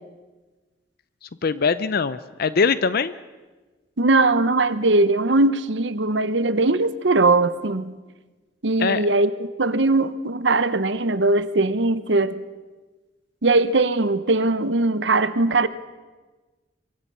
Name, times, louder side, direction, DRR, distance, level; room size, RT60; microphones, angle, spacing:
voice 1, 1.2-3.1 8.8-9.0, left 5 dB, 55° left, 0.6 m, -22 dB
voice 2, 4.0-7.9 8.6-12.4 13.4-15.7, right 2 dB, 70° right, 1.0 m, -20 dB
24.0 x 23.5 x 5.6 m
head